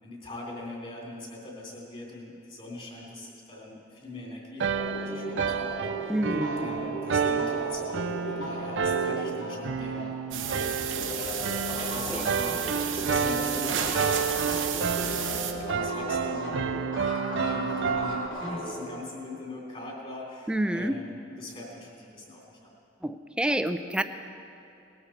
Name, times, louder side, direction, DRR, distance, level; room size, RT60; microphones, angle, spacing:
voice 1, 0.0-11.4 11.7-14.6 14.9-22.7, left 2 dB, 35° left, -3 dB, 3.2 m, -42 dB
sound 1, 4.6-18.3, right 6 dB, 70° right, 0.5 m, -30 dB
sound 2, 4.7-10.6 10.9-18.9, equal, 75° left, 3.0 m, -36 dB
voice 2, 6.1-6.7 12.1-12.3 20.5-21.0 23.0-24.0, right 1 dB, 5° right, 9 dB, 0.5 m, -28 dB
sound 3, 10.3-15.5, right 9 dB, 90° right, 1.0 m, -32 dB
19.0 x 13.0 x 4.3 m, 2.7 s
head